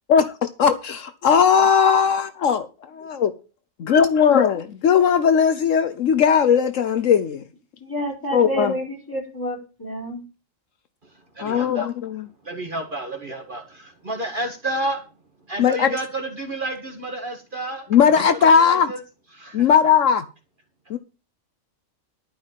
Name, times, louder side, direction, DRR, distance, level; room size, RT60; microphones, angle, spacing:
voice 1, 0.1-3.3 3.9-7.4 8.3-8.7 11.4-12.3 15.6-15.9 17.9-18.9 19.5-20.3 20.9-21.0, left 7 dB, 70° left, 1.2 m, -18 dB
voice 2, 7.8-10.2, equal, 15° left, 4.9 m, -29 dB
voice 3, 11.4-11.9 12.4-15.0 15.5-18.2 18.6-19.0 19.3-19.7, right 1 dB, 40° right, 1.9 m, -30 dB
12.0 x 5.7 x 7.4 m
omnidirectional pair, 1.4 m